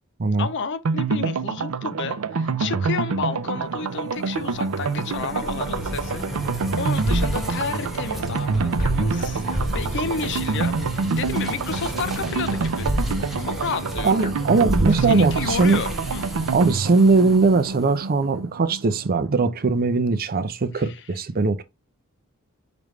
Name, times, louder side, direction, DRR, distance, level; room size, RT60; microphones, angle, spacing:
voice 1, 0.4-9.4 9.7-12.9 13.4-14.2 14.9-16.2 20.7-21.0, left 5 dB, 60° left, 0.6 m, -31 dB
sound 1, 0.8-19.5 19.7-19.8 20.1-20.2, right 4 dB, 90° right, 0.5 m, -27 dB
sound 2, 4.3-17.7, equal, ahead, 1.1 m, -31 dB
sound 3, 5.1-15.7, left 1 dB, 40° left, 1.6 m, -39 dB
voice 2, 14.0-15.8 16.5-21.6, right 4 dB, 45° right, 0.5 m, -20 dB
5.0 x 3.4 x 3.1 m
head